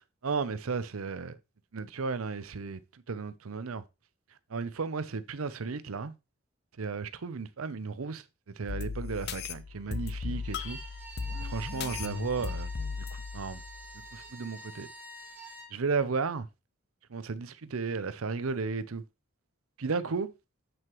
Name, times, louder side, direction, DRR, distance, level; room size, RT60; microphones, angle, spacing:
voice 1, 0.2-1.4 1.7-3.8 4.5-6.1 6.8-8.2 8.6-10.8 11.4-12.7 13.0-13.6 14.1-14.9 15.7-16.5 17.1-19.0 19.8-20.3, right 4 dB, 85° right, 0.7 m, -34 dB
sound 1, 8.7-14.3, left 5 dB, 50° left, 0.6 m, -37 dB
Bowed string instrument, 10.4-15.7, right 3 dB, 10° right, 2.2 m, -47 dB
8.0 x 7.6 x 3.1 m
head